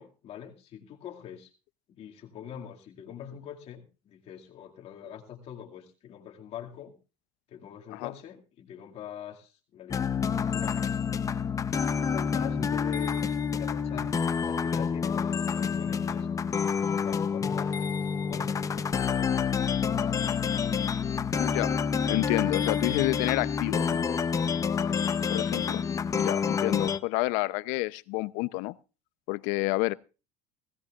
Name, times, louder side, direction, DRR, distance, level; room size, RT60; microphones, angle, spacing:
voice 1, 0.0-1.5 1.9-7.0 7.5-11.0 11.8-14.1 14.4-16.3 16.8-17.9 18.2-19.4 19.7-20.7 24.8-25.3, left 9 dB, 50° left, 2.3 m, -44 dB
sound 1, 9.9-27.0, left 6 dB, 25° left, 0.8 m, -28 dB
voice 2, 21.4-21.7 22.1-24.1 25.3-25.8 26.1-28.7 29.3-29.9, left 22 dB, 75° left, 0.7 m, -29 dB
19.5 x 16.5 x 2.5 m
cardioid pair, 130°, 14 cm